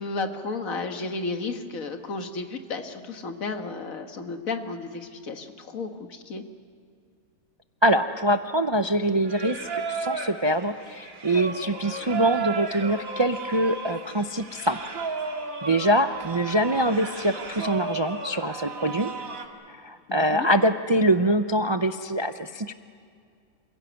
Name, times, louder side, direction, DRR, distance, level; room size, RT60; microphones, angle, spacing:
voice 1, 0.0-6.4 20.1-20.5, left 3 dB, 65° left, 6 dB, 1.9 m, -33 dB
voice 2, 7.8-14.9 15.6-19.1 19.7-22.7, right 1 dB, 45° right, 8 dB, 0.3 m, -24 dB
Singing, 9.3-19.5, right 4 dB, 65° right, 2.3 m, -34 dB
27.5 x 17.0 x 9.4 m, 2.3 s
omnidirectional pair, 1.6 m